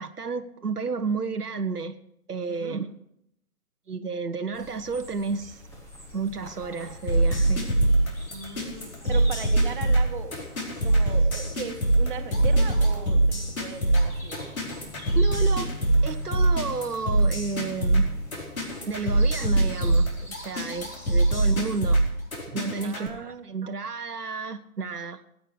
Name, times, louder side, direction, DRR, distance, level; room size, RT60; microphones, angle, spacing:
voice 1, 0.0-2.0 2.3-2.9 3.9-5.6 6.1-7.6 8.6-8.7 15.1-15.7 16.0-18.1 18.9-22.0 22.5-25.2, right 4 dB, 80° right, 8 dB, 0.9 m, -31 dB
voice 2, 2.5-2.8 8.3-10.3 10.8-14.5 22.8-23.5, right 6 dB, 35° right, 5 dB, 1.4 m, -38 dB
sound 1, 4.5-21.9, left 2 dB, 5° left, 1.1 m, -45 dB
sound 2, 7.1-23.1, right 2 dB, 60° left, 4.6 m, -23 dB
18.5 x 8.8 x 4.8 m, 0.77 s
figure-of-eight pair, 140°, 46 cm